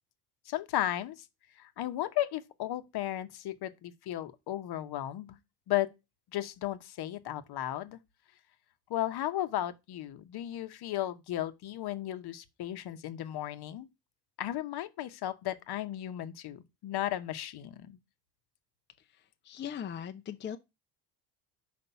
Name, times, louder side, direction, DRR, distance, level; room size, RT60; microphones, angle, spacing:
voice 1, 0.5-1.2 1.6-5.4 5.7-5.9 6.3-8.0 8.9-13.9 14.4-18.0, left 13 dB, 50° left, 0.9 m, -35 dB
voice 2, 19.1-20.6, left 8 dB, 25° left, 0.5 m, -40 dB
5.2 x 4.0 x 5.6 m
hypercardioid pair, 75°, 50 cm